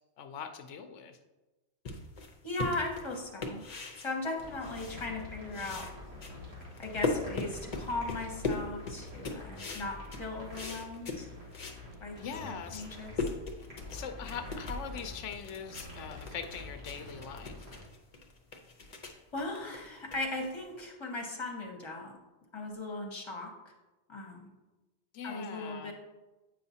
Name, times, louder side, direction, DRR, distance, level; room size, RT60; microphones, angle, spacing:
voice 1, 0.2-1.2 12.2-12.9 13.9-17.7 25.1-25.9, left 7 dB, 85° left, 7 dB, 0.9 m, -42 dB
sound 1, 1.9-5.3 5.5-11.8 12.3-12.4 12.7-20.8, left 3 dB, 40° left, 0.7 m, -39 dB
voice 2, 2.4-3.6 4.0-5.9 6.8-11.3 12.0-13.3 19.3-22.2 22.5-23.7 24.1-24.5 25.2-25.9, left 2 dB, 25° left, 1 dB, 1.0 m, -38 dB
sound 2, 4.4-17.8, left 1 dB, 60° right, 2.1 m, -47 dB
8.2 x 5.7 x 2.8 m, 1.1 s
omnidirectional pair, 1.2 m